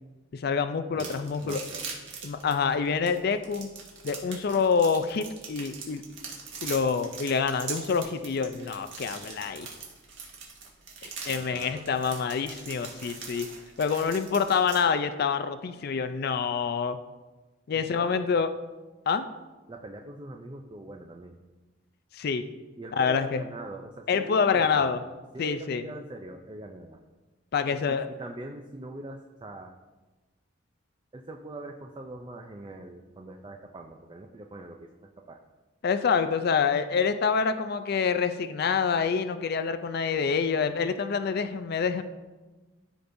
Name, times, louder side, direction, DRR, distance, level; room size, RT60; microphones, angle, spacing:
voice 1, 0.3-1.6 2.2-3.7 4.0-6.1 6.6-9.7 11.0-13.5 13.8-17.0 17.7-18.5 19.1-19.3 22.1-22.4 23.0-23.4 24.1-25.0 25.4-25.8 27.5-28.1 35.8-42.0, left 5 dB, 55° left, 10 dB, 0.4 m, -26 dB
sound 1, 1.0-14.8, right 5 dB, 75° right, 1.8 m, -41 dB
voice 2, 1.4-1.9 11.0-12.0 17.7-18.2 19.7-21.4 22.8-24.9 25.3-27.0 27.7-29.7 31.1-35.4, right 2 dB, 25° right, 3 dB, 0.5 m, -43 dB
14.0 x 5.1 x 2.6 m, 1.2 s
head